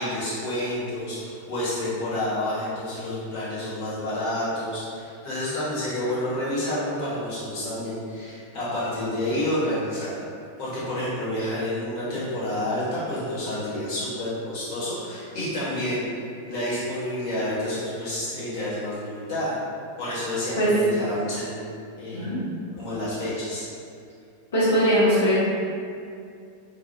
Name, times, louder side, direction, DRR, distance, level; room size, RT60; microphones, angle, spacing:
voice 1, 0.0-10.1 10.6-16.1 16.4-19.6 20.0-21.7 22.0-22.2 22.8-23.7, left 1 dB, 45° left, -10 dB, 1.0 m, -29 dB
voice 2, 24.5-25.4, equal, 65° left, -12 dB, 0.6 m, -20 dB
2.2 x 2.1 x 2.7 m, 2.4 s
figure-of-eight pair, 90°, 0 cm